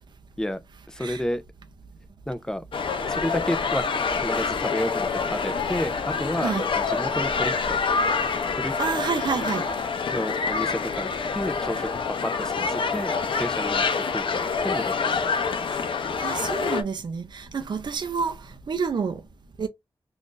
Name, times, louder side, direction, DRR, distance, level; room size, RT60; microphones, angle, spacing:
voice 1, 0.9-1.4 2.3-2.6 3.1-3.9 4.1-7.8 8.5-8.7 10.1-13.8 14.1-14.9 15.2-15.9, left 1 dB, 5° left, 0.4 m, -31 dB
sound 1, 2.7-16.8, left 5 dB, 80° left, 0.5 m, -26 dB
voice 2, 8.8-9.7 16.2-19.2 19.6-19.7, right 5 dB, 60° right, 0.5 m, -28 dB
2.5 x 2.4 x 3.7 m
wide cardioid pair, 105°, 9 cm